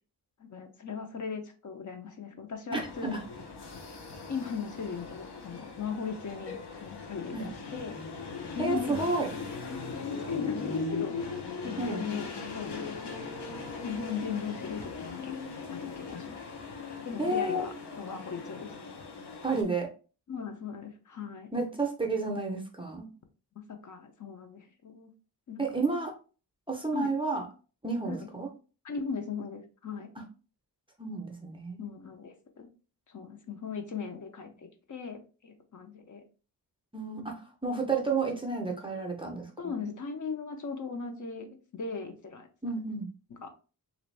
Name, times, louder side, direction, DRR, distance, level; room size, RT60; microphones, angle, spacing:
voice 1, 0.4-3.2 4.3-7.9 8.5-9.1 9.7-11.2 11.6-13.0 13.8-15.4 15.7-16.4 17.0-18.7 20.3-21.5 23.7-25.1 25.5-25.8 26.9-27.1 28.1-28.3 28.8-30.1 31.8-32.7 33.1-36.2 39.6-42.5 43.4-43.5, left 5 dB, 50° left, 5 dB, 0.5 m, -38 dB
sound 1, 2.7-19.6, left 4 dB, 90° left, 0.8 m, -39 dB
voice 2, 2.7-3.2 7.3-7.5 8.6-9.3 11.8-12.0 17.2-17.6 19.4-19.9 21.5-23.1 25.6-26.1 26.7-27.4 27.8-28.5 30.2-30.3 31.0-31.8 36.9-39.7 42.6-43.1, right 3 dB, 15° right, 1 dB, 0.5 m, -31 dB
3.3 x 2.5 x 3.1 m, 0.36 s
wide cardioid pair, 180°, 40 cm